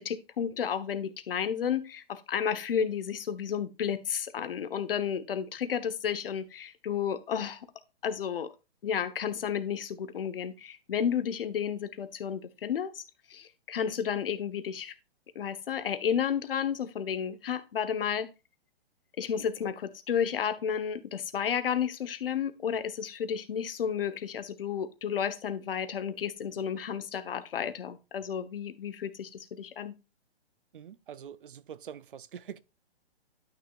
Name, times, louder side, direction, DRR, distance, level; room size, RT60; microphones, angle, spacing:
voice 1, 0.0-7.7 8.0-8.5 8.8-13.0 13.3-14.9 15.3-18.3 19.2-29.9, left 8 dB, 60° left, 1.2 m, -32 dB
voice 2, 30.7-32.6, right 8 dB, 55° right, 0.6 m, -44 dB
11.5 x 6.4 x 2.5 m
hypercardioid pair, 170°, 32 cm